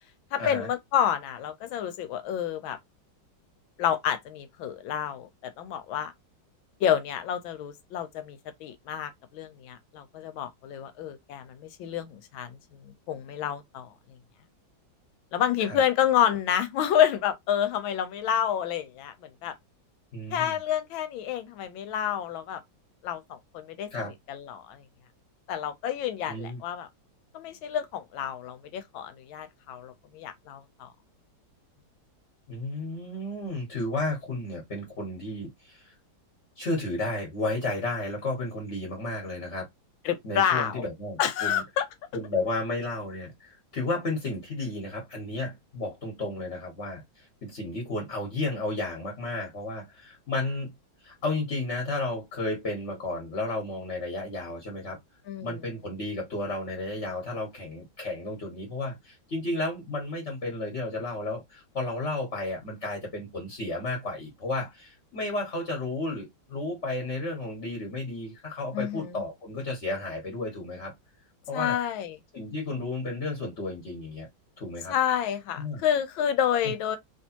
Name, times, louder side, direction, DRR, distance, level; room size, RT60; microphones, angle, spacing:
voice 1, 0.3-2.8 3.8-6.1 6.8-12.6 13.1-13.9 15.3-19.5 20.3-22.6 23.0-24.8 25.5-26.9 27.3-30.9 40.0-40.8 41.2-41.9 55.3-55.5 68.7-69.2 71.5-72.2 74.9-77.0, left 9 dB, 85° left, 1.5 m, -29 dB
voice 2, 20.1-20.6 23.9-24.1 26.3-26.6 32.5-35.9 36.6-39.6 40.2-41.6 42.1-50.7 51.0-55.0 55.4-70.9 71.5-71.8 72.3-74.3 74.6-74.9 75.6-75.8, left 2 dB, 40° left, 1.3 m, -33 dB
3.4 x 3.0 x 2.8 m
omnidirectional pair, 2.1 m